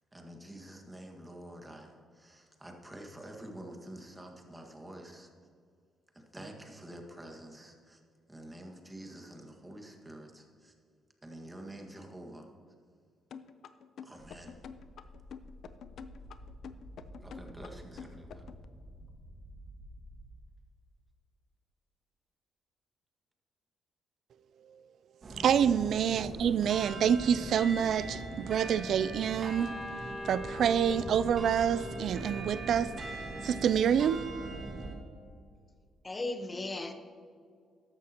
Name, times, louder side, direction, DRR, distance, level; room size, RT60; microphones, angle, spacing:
voice 1, 0.1-5.3 6.1-8.0 8.3-10.7 11.2-12.5 14.0-14.6 17.2-18.5, right 1 dB, 15° right, 1.8 m, -48 dB
sound 1, 13.3-18.6, left 7 dB, 65° left, 0.6 m, -47 dB
sound 2, 14.2-20.3, equal, 5° left, 2.1 m, -51 dB
sound 3, 25.2-34.9, right 2 dB, 45° right, 2.0 m, -40 dB
voice 2, 25.4-29.8 30.2-33.0 33.4-34.2, right 8 dB, 65° right, 0.4 m, -27 dB
voice 3, 36.0-36.9, left 2 dB, 25° left, 1.1 m, -37 dB
14.0 x 11.5 x 3.0 m
cardioid pair, 90°, 0 cm